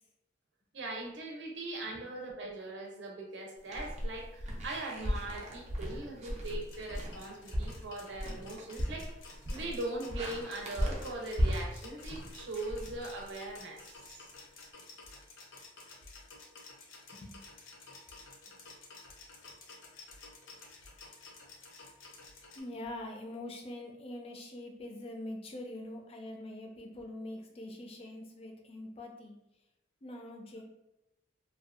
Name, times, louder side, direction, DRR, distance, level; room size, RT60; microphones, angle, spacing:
voice 1, 0.7-9.1 9.5-13.8, right 2 dB, 80° right, 0 dB, 0.6 m, -40 dB
sound 1, 3.6-13.5, equal, 40° right, 0.5 m, -36 dB
sound 2, 6.4-22.6, left 3 dB, 85° left, 0.6 m, -53 dB
voice 2, 22.5-29.4 30.0-30.6, left 1 dB, 30° left, 3 dB, 0.4 m, -44 dB
2.6 x 2.2 x 2.4 m, 0.89 s
head